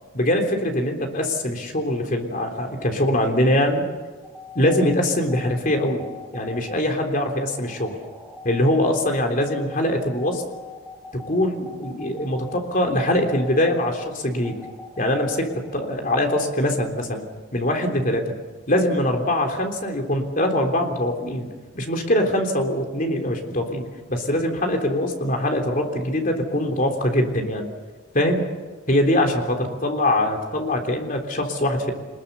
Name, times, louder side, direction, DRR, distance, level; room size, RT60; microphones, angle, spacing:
voice 1, 0.1-3.8 4.6-6.1 6.3-8.0 8.4-10.4 11.1-14.6 15.0-17.2 17.5-18.4 18.7-21.5 21.7-27.7 28.1-28.5 28.9-31.9, left 1 dB, 45° left, 3 dB, 3.6 m, -23 dB
sound 1, 4.2-15.9, left 4 dB, ahead, 2.8 m, -43 dB
26.5 x 21.0 x 7.0 m, 1.3 s
head